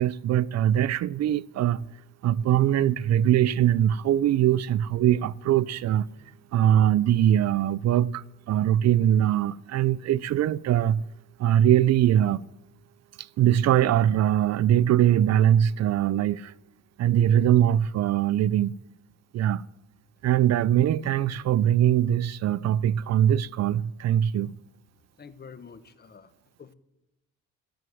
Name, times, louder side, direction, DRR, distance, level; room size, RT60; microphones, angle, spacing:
voice 1, 0.0-1.9 2.2-6.1 6.5-11.0 11.4-12.4 13.2-16.5 17.0-18.7 19.3-19.6 20.2-24.5, right 11 dB, 60° right, 0.4 m, -22 dB
voice 2, 25.2-26.3 26.6-26.7, left 6 dB, 35° left, 1.0 m, -47 dB
14.0 x 7.8 x 6.2 m
cardioid pair, 90°, 30 cm